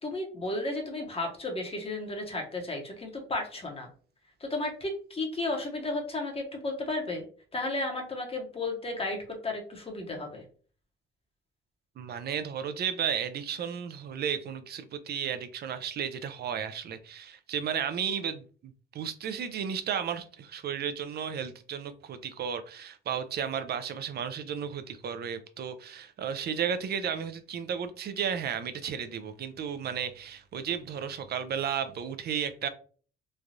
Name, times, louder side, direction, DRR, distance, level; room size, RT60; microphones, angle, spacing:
voice 1, 0.0-3.9 4.4-7.2 7.5-9.2 9.4-10.4, left 2 dB, 30° left, 0.8 m, -33 dB
voice 2, 12.0-32.7, right 8 dB, 55° right, 0.4 m, -33 dB
3.1 x 2.3 x 2.6 m
cardioid pair, 90°, 20 cm